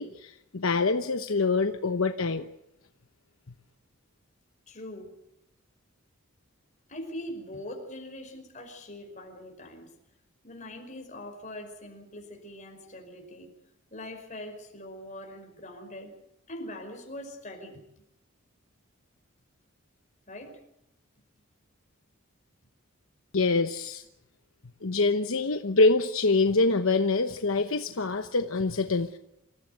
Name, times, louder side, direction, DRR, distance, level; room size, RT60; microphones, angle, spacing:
voice 1, 0.0-2.4 23.3-24.0 24.8-29.2, left 3 dB, 70° left, 8 dB, 1.0 m, -25 dB
voice 2, 4.7-5.1 6.9-9.9 10.4-13.5 13.9-16.1 16.5-17.8 20.3-20.6, left 1 dB, 35° left, 3 dB, 5.3 m, -42 dB
27.5 x 15.0 x 8.0 m, 0.83 s
head